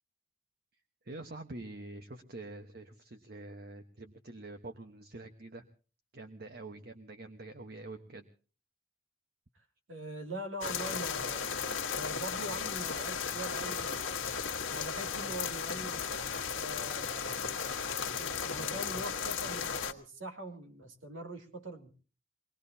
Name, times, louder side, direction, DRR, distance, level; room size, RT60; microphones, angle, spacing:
voice 1, 1.0-5.6 6.1-8.2, right 2 dB, 50° right, 7 dB, 1.2 m, -46 dB
voice 2, 9.5-14.2 14.7-16.1 16.5-17.8 18.2-21.9, right 1 dB, 80° right, 4 dB, 2.7 m, -43 dB
sound 1, 10.6-19.9, left 6 dB, 75° left, 1.5 m, -35 dB
24.5 x 19.0 x 2.8 m, 0.36 s
head